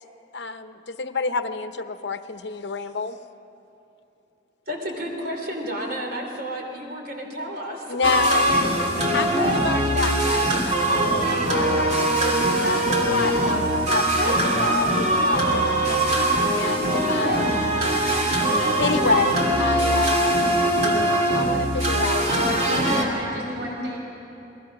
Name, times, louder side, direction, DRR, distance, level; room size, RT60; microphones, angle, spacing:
voice 1, 0.3-3.2 7.9-8.4 9.1-17.8 18.5-20.4 21.3-22.6, left 4 dB, 65° left, 9 dB, 0.9 m, -28 dB
voice 2, 4.7-8.0 8.3-9.5, equal, 55° right, 2 dB, 3.2 m, -32 dB
sound 1, 8.0-23.0, right 1 dB, 40° right, 2.7 m, -22 dB
voice 3, 22.6-24.0, equal, 70° right, -2 dB, 5.5 m, -31 dB
28.5 x 20.0 x 6.0 m, 2.8 s
head